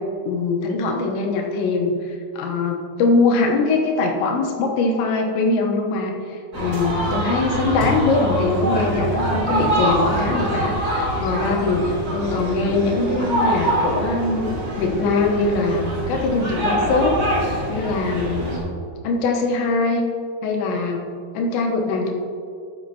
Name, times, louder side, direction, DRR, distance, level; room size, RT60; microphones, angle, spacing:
voice 1, 0.3-14.5 14.8-17.2 17.7-18.5 19.0-20.0 20.4-21.0 21.3-22.1, left 3 dB, 85° left, 1 dB, 3.2 m, -22 dB
sound 1, 6.5-18.6, right 1 dB, 30° right, 1.9 m, -24 dB
12.5 x 7.7 x 2.8 m, 2.3 s
omnidirectional pair, 5.1 m